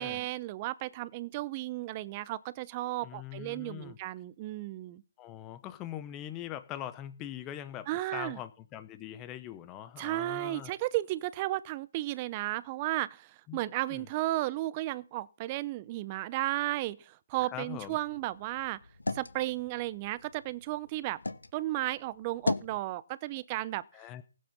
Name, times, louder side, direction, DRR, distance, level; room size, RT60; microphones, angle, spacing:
voice 1, 0.0-5.0 7.9-8.4 10.0-18.8 19.1-21.2 21.5-23.8, right 17 dB, 20° right, 0.6 m, -34 dB
voice 2, 3.0-4.0 5.2-10.8 13.5-13.6 13.9-14.1 17.5-18.0 23.9-24.2, left 11 dB, 15° left, 0.8 m, -42 dB
sound 1, 17.7-21.5 21.9-22.8, left 2 dB, 90° left, 1.1 m, -38 dB
16.0 x 8.6 x 5.4 m
figure-of-eight pair, 155°, 0 cm